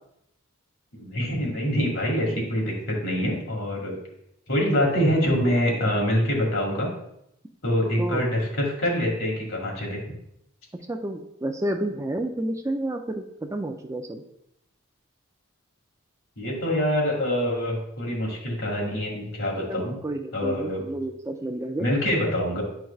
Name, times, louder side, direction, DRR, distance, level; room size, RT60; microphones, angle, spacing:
voice 1, 0.9-4.0 4.5-6.9 7.6-10.0 16.4-20.0 20.3-20.8 21.8-22.6, equal, 75° left, -2 dB, 2.0 m, -25 dB
voice 2, 10.9-14.2 19.7-21.8, right 1 dB, 15° right, 5 dB, 0.3 m, -30 dB
9.7 x 4.6 x 2.3 m, 0.79 s
head